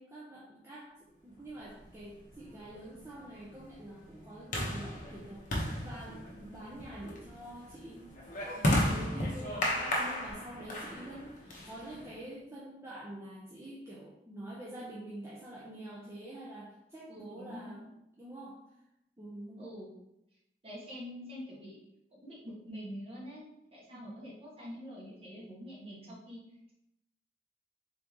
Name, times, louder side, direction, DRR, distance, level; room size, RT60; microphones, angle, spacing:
voice 1, 0.0-8.1 8.6-17.8 18.2-18.6 19.2-19.7 23.9-24.3, right 1 dB, 15° right, -6 dB, 0.6 m, -46 dB
sound 1, 1.8-12.2, left 1 dB, 50° left, 0.8 m, -35 dB
voice 2, 8.6-9.0 17.1-17.9 19.6-19.9 20.6-21.8 22.1-26.4, equal, 35° right, -5 dB, 1.3 m, -46 dB
3.8 x 3.1 x 3.5 m, 0.84 s
head